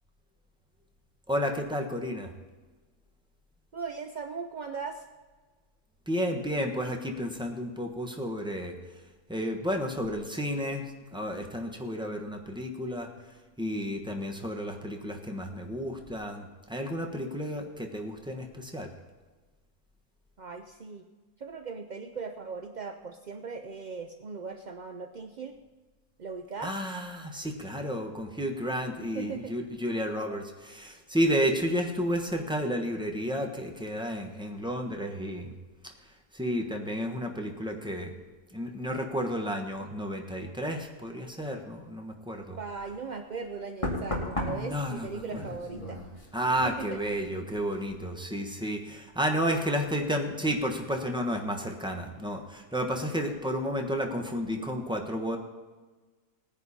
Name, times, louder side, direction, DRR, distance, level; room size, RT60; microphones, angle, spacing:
voice 1, 1.3-2.3 6.1-8.8 9.3-10.8 11.1-13.1 13.6-18.9 26.6-35.5 35.8-38.2 38.5-42.6 44.5-45.1 45.3-45.4 46.3-55.4, equal, 5° right, 3 dB, 1.1 m, -32 dB
voice 2, 3.7-5.0 20.4-21.1 21.4-25.6 26.2-26.7 29.0-29.6 42.6-46.0 46.6-47.0, right 5 dB, 65° right, 5 dB, 0.4 m, -38 dB
Knock, 42.8-43.0 43.8-47.3 47.6-48.0, left 1 dB, 20° left, 2.3 m, -36 dB
18.5 x 10.0 x 4.3 m, 1.3 s
omnidirectional pair, 1.6 m